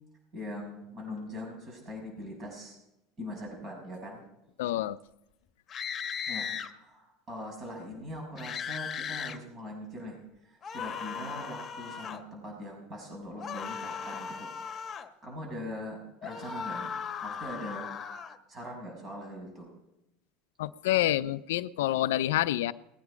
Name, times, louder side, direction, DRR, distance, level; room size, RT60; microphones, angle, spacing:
voice 1, 0.3-2.8 3.2-4.2 6.3-10.2 10.4-14.5 15.2-16.9 17.2-17.9 18.5-19.7, left 1 dB, 40° right, 1 dB, 6.3 m, -41 dB
voice 2, 4.6-5.0 20.6-22.7, left 14 dB, 80° left, 15 dB, 0.4 m, -27 dB
sound 1, 5.7-6.7 8.4-9.4 10.6-12.2 13.4-15.1 16.2-18.4, left 7 dB, 40° left, 1.1 m, -37 dB
20.0 x 9.6 x 5.0 m, 0.88 s
hypercardioid pair, 85°, 0 cm